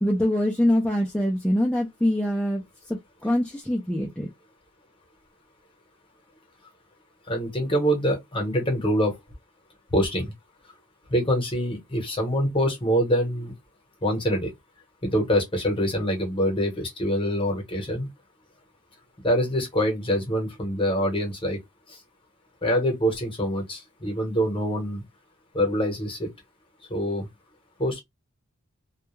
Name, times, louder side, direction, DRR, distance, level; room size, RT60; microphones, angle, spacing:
voice 1, 0.0-2.6 2.9-4.3, left 1 dB, 5° left, 0.4 m, -24 dB
voice 2, 7.3-9.1 9.9-10.3 11.1-13.5 14.0-14.5 15.0-18.1 19.2-21.6 22.6-25.0 25.5-26.3 26.9-27.3 27.8-28.0, equal, 25° left, 0.9 m, -25 dB
2.2 x 2.1 x 3.0 m
head